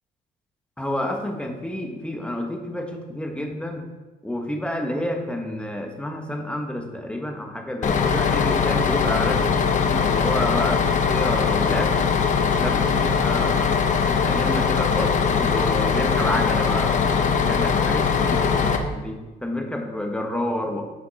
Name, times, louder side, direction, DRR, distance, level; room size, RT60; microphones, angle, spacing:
voice 1, 0.8-3.8 4.2-9.5 9.8-12.0 12.5-13.8 14.2-16.9 17.5-20.8, left 1 dB, 5° left, 2 dB, 1.5 m, -29 dB
Bus, 7.8-18.8, left 6 dB, 45° left, 1.0 m, -21 dB
11.5 x 5.7 x 4.3 m, 1.2 s
cardioid pair, 110°, 17 cm